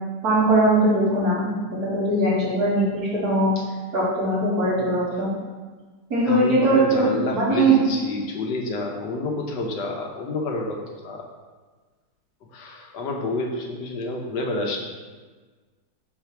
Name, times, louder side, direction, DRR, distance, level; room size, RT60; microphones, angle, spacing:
voice 1, 0.2-3.5 3.9-5.3 6.1-7.8, right 2 dB, 65° right, -9 dB, 2.8 m, -20 dB
voice 2, 6.3-11.3 12.5-14.8, left 2 dB, 85° left, 1 dB, 1.5 m, -29 dB
4.8 x 4.1 x 5.7 m, 1.4 s
omnidirectional pair, 1.8 m